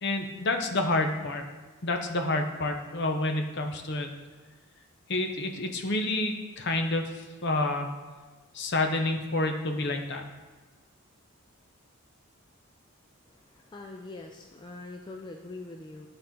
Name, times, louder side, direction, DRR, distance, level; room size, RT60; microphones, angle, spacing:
voice 1, 0.0-1.4 1.8-4.1 5.1-7.9 8.5-10.2, left 2 dB, 50° left, 5 dB, 0.7 m, -29 dB
voice 2, 13.3-16.1, left 2 dB, 20° left, 2 dB, 0.3 m, -43 dB
11.5 x 4.3 x 3.8 m, 1.3 s
head